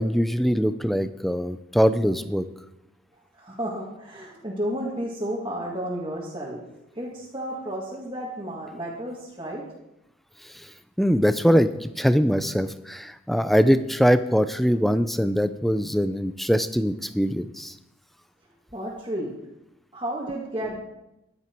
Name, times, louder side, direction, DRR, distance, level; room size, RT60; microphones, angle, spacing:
voice 1, 0.0-2.4 11.0-17.7, equal, ahead, 11 dB, 0.5 m, -22 dB
voice 2, 3.3-6.6 6.9-9.6 18.7-19.3 19.9-20.8, right 1 dB, 25° right, -6 dB, 2.1 m, -32 dB
14.5 x 12.0 x 4.6 m, 0.88 s
head